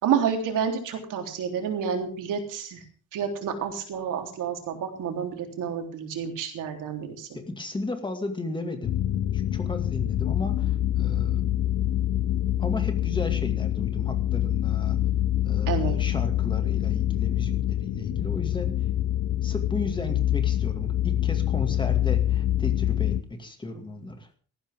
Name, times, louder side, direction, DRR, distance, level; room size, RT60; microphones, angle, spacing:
voice 1, 0.0-2.8 3.1-7.3 15.7-16.0, right 7 dB, 80° right, 3 dB, 3.8 m, -29 dB
voice 2, 7.3-9.0 9.3-11.4 12.6-15.0 15.4-18.7 19.3-24.3, left 2 dB, 15° left, 5 dB, 2.3 m, -35 dB
sound 1, 8.8-23.2, left 12 dB, 60° left, 0.7 m, -25 dB
19.0 x 14.5 x 3.7 m, 0.40 s
cardioid pair, 170°, 31 cm